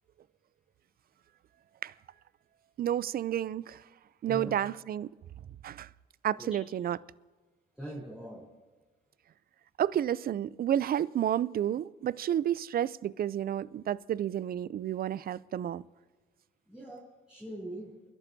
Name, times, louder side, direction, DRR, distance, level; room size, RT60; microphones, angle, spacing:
voice 1, 2.8-3.8 4.2-5.1 5.6-5.9 6.2-7.0 9.8-15.8, right 10 dB, 50° right, 0.4 m, -31 dB
voice 2, 7.8-8.5 16.7-18.1, right 1 dB, 5° right, 3.6 m, -42 dB
29.0 x 12.0 x 2.7 m
cardioid pair, 90°, 20 cm